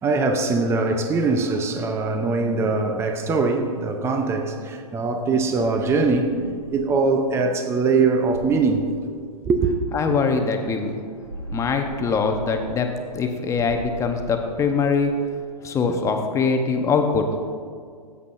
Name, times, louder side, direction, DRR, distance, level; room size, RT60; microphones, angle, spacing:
voice 1, 0.0-8.9 9.4-9.7, right 4 dB, 15° right, 0.7 m, -22 dB
sound 1, 5.4-7.3 8.2-9.7 11.0-13.2 13.5-15.2, right 2 dB, 75° right, 2.0 m, -39 dB
voice 2, 9.9-10.9 11.5-12.9 13.1-15.1 15.6-17.3, left 5 dB, 15° left, 0.9 m, -22 dB
16.0 x 8.3 x 2.6 m
hypercardioid pair, 125°, 19 cm